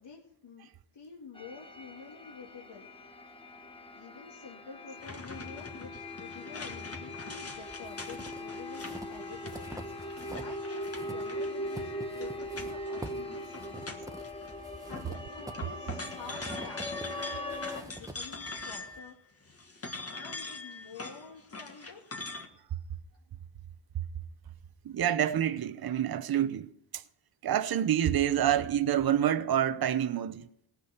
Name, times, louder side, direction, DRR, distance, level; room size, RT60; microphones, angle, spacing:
voice 1, 0.0-2.9 3.9-5.9 6.2-14.1 14.4-19.6 20.1-22.1, left 5 dB, 60° left, 2.1 m, -49 dB
sound 1, 1.4-17.8, left 1 dB, 10° left, 1.1 m, -41 dB
sound 2, 5.0-14.5 14.8-19.1 19.5-22.5, left 3 dB, 30° left, 1.7 m, -43 dB
sound 3, 7.5-10.6 10.8-19.0, right 1 dB, 5° right, 1.2 m, -47 dB
voice 2, 24.8-27.0 27.4-30.5, right 10 dB, 50° right, 0.8 m, -27 dB
18.0 x 6.3 x 8.2 m
wide cardioid pair, 105°, 47 cm